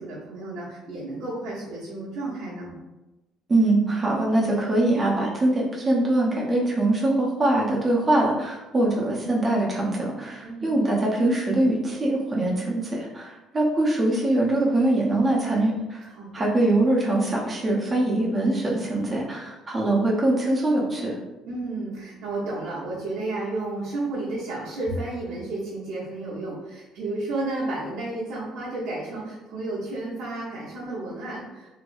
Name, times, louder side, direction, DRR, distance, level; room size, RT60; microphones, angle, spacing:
voice 1, 0.0-2.8 10.4-10.7 16.1-16.5 21.5-31.7, right 2 dB, 80° right, -10 dB, 1.0 m, -32 dB
voice 2, 3.5-16.1 16.3-21.2, right 1 dB, 25° right, -3 dB, 0.9 m, -23 dB
3.2 x 2.9 x 2.6 m, 1.1 s
cardioid pair, 115°, 0 cm